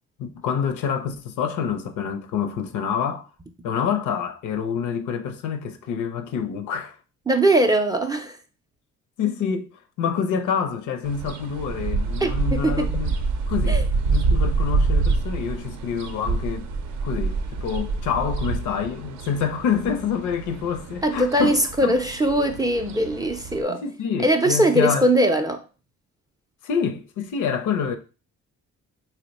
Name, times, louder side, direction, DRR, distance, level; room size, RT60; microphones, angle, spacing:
voice 1, 0.2-3.3 3.6-7.0 9.2-9.7 10.0-13.2 13.5-13.8 14.1-16.7 17.0-21.6 23.7-25.0 26.6-28.0, left 7 dB, 80° left, 0.6 m, -27 dB
voice 2, 7.3-8.4 12.2-12.9 13.7-13.8 21.0-23.8 24.2-25.6, right 1 dB, 15° right, 0.3 m, -21 dB
sound 1, 11.0-23.6, right 3 dB, 70° right, 0.5 m, -26 dB
2.9 x 2.1 x 4.0 m
cardioid pair, 90°, 30 cm